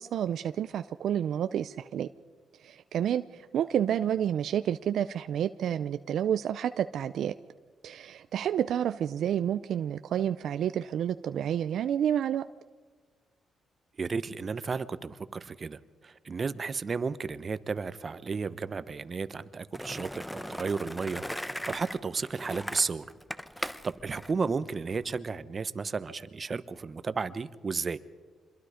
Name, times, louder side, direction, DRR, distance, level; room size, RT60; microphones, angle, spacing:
voice 1, 0.0-2.1 2.6-7.3 7.8-12.4, right 9 dB, 75° right, 11 dB, 0.5 m, -29 dB
voice 2, 14.0-23.0 23.6-28.0, right 5 dB, 40° right, 14 dB, 1.1 m, -33 dB
Skateboard, 19.7-25.2, equal, 5° left, 0.9 m, -39 dB
26.5 x 22.5 x 5.1 m, 1.4 s
cardioid pair, 70°, 0 cm